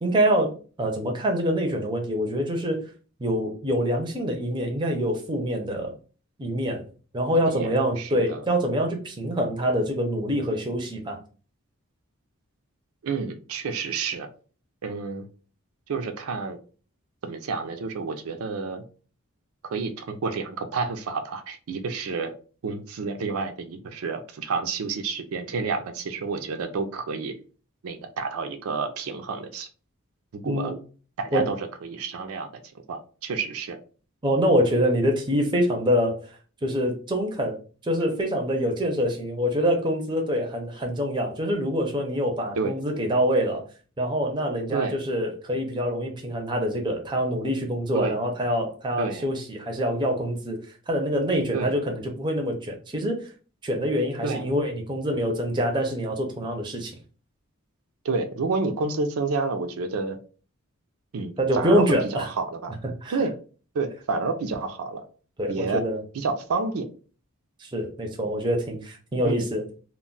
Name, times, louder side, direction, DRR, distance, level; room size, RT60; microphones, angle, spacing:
voice 1, 0.0-2.8 3.2-5.9 6.4-6.8 7.1-11.2 30.4-30.7 31.3-31.5 34.2-37.6 37.8-43.7 44.0-50.6 50.9-53.3 53.6-56.9 61.4-62.3 63.0-63.3 65.4-66.0 67.6-69.6, equal, 20° right, 2 dB, 0.5 m, -25 dB
voice 2, 7.3-8.4 13.0-14.3 14.8-15.3 15.9-16.6 17.2-18.8 19.6-22.3 22.6-27.4 27.8-29.7 30.3-30.7 31.2-32.5 32.9-33.8 42.6-42.8 44.7-45.0 47.9-48.2 49.0-49.3 51.5-51.7 54.2-54.5 58.0-60.2 61.1-62.8 63.1-63.3 63.7-65.0 65.5-65.8 66.1-66.9 69.2-69.5, right 4 dB, 85° right, 6 dB, 0.4 m, -29 dB
2.2 x 2.0 x 3.8 m, 0.38 s
head